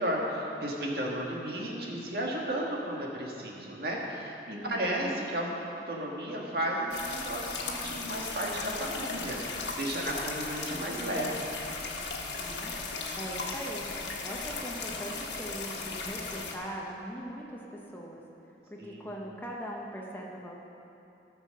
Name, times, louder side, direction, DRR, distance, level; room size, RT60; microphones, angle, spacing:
voice 1, 0.0-5.5 5.9-11.5 18.8-19.1, right 1 dB, 55° right, -2 dB, 1.8 m, -33 dB
voice 2, 4.5-5.2 12.4-12.7 13.2-13.9 14.2-20.6, equal, 10° left, -2 dB, 1.0 m, -41 dB
sound 1, 6.9-16.6, left 4 dB, 75° left, 1.4 m, -37 dB
14.0 x 6.7 x 6.6 m, 2.8 s
head